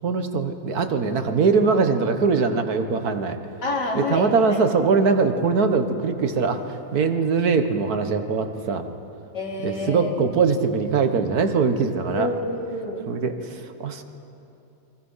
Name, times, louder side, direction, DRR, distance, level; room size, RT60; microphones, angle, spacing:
voice 1, 0.0-3.4 4.0-8.9 9.6-12.3 13.1-14.0, right 4 dB, 65° right, 7 dB, 1.8 m, -22 dB
voice 2, 3.6-4.6 9.3-10.1 12.1-13.1, left 2 dB, 90° left, -1 dB, 3.6 m, -28 dB
29.5 x 24.0 x 5.7 m, 2.8 s
omnidirectional pair, 1.8 m